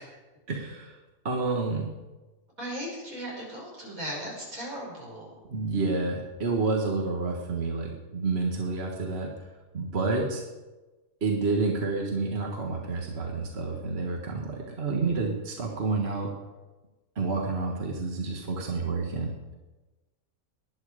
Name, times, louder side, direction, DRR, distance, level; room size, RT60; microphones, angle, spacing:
voice 1, 0.5-0.9 1.3-1.9 5.5-9.3 9.7-10.4 11.2-16.3 17.2-19.3, right 3 dB, 50° right, 0 dB, 1.8 m, -29 dB
voice 2, 2.6-5.3, equal, 85° right, -3 dB, 6.0 m, -37 dB
19.0 x 11.0 x 5.0 m, 1.2 s
omnidirectional pair, 1.4 m